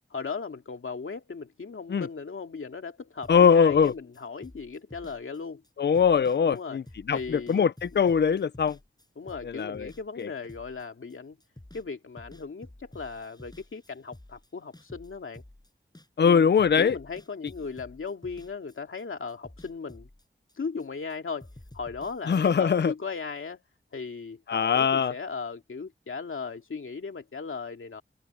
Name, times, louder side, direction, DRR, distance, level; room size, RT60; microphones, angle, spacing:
voice 1, 0.1-5.6 6.5-6.8 7.1-7.7 9.2-11.4 11.7-15.4 16.2-16.5 16.8-20.1 20.6-21.5 21.7-23.6 23.9-28.0, left 5 dB, 80° left, 2.4 m, -37 dB
sound 1, 3.2-11.9 12.2-16.3 16.6-19.0 19.3-21.2 21.4-22.6, left 1 dB, 20° left, 7.2 m, -50 dB
voice 2, 3.3-3.9 5.8-6.8 7.1-8.8 9.4-9.9 10.2-10.3 16.2-17.0 22.3-22.9 24.5-25.1, left 6 dB, 60° left, 0.5 m, -22 dB
wide cardioid pair, 70°, 21 cm